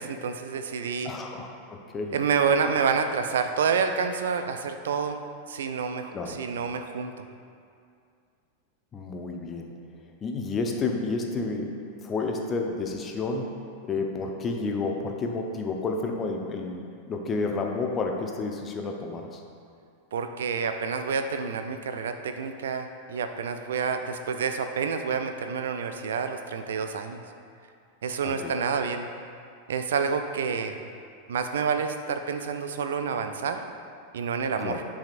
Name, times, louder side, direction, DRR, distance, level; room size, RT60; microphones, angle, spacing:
voice 1, 0.0-1.1 2.1-5.2 5.5-7.2 20.1-27.2 28.0-29.1 29.7-30.8 31.3-33.6 34.1-34.8, right 6 dB, 60° right, 7 dB, 0.4 m, -28 dB
voice 2, 1.0-2.2 6.1-6.4 8.9-9.7 10.2-11.7 12.0-13.5 13.9-19.4 28.2-28.5 34.6-34.8, left 3 dB, 25° left, 2 dB, 0.7 m, -30 dB
10.5 x 4.9 x 2.5 m, 2.3 s
figure-of-eight pair, 90°, 0 cm